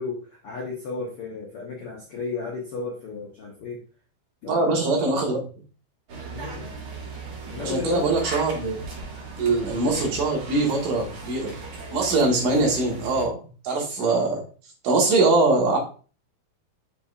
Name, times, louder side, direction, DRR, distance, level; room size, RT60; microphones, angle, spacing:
voice 1, 0.0-3.8 4.4-5.0 6.3-6.7 7.5-8.2 9.4-9.6, left 4 dB, 75° left, -3 dB, 1.3 m, -34 dB
voice 2, 4.5-5.4 7.6-8.8 9.4-11.5 11.9-13.4 13.6-14.4 14.8-15.8, right 3 dB, 65° right, -1 dB, 2.8 m, -22 dB
sound 1, 6.1-13.2, right 3 dB, 50° right, 1.8 m, -37 dB
7.1 x 5.6 x 2.4 m, 0.37 s
omnidirectional pair, 4.4 m